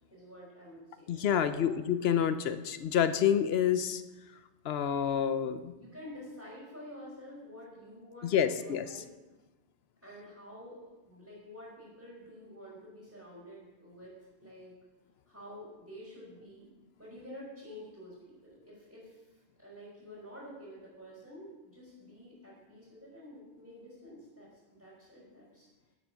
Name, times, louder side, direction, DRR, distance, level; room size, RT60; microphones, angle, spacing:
voice 1, 0.1-1.8 5.8-9.1 10.0-10.8 11.0-14.1 14.4-14.7 15.3-16.7 17.0-19.2 19.6-25.7, equal, 15° right, -10 dB, 4.0 m, -49 dB
voice 2, 1.1-4.0 4.6-5.7 8.2-8.9, left 8 dB, 65° left, 12 dB, 0.8 m, -28 dB
10.5 x 8.0 x 6.1 m, 1.1 s
omnidirectional pair, 1.2 m